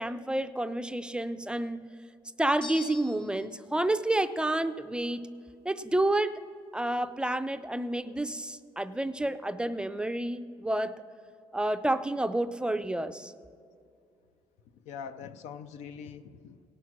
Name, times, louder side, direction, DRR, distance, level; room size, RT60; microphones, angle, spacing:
voice 1, 0.0-1.9 2.4-5.3 5.7-6.3 6.7-11.0 11.5-13.3, right 1 dB, 10° right, 11 dB, 0.4 m, -29 dB
sound 1, 2.6-3.6, left 4 dB, 50° left, 1.3 m, -43 dB
voice 2, 14.7-16.7, left 7 dB, 80° left, 11 dB, 0.5 m, -43 dB
17.5 x 6.2 x 5.9 m, 2.4 s
cardioid pair, 95°, 12 cm